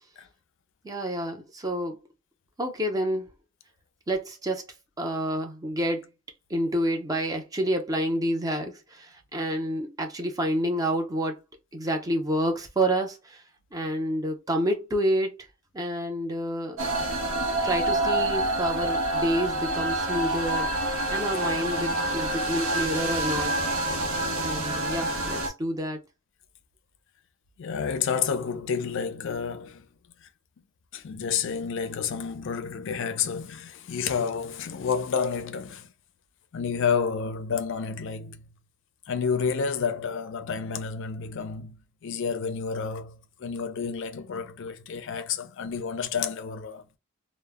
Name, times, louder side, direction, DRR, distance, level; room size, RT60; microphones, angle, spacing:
voice 1, 0.8-2.0 2.6-3.3 4.1-4.6 5.0-6.1 6.5-11.4 11.7-13.4 13.7-15.5 15.7-16.9 17.6-23.6 24.4-26.0, equal, 20° right, 0.5 m, -28 dB
sound 1, 16.8-25.5, right 1 dB, 90° right, 0.7 m, -27 dB
voice 2, 27.6-29.9 30.9-35.9 36.5-38.5 39.1-46.8, left 6 dB, 65° left, 0.4 m, -30 dB
2.0 x 2.0 x 3.3 m
head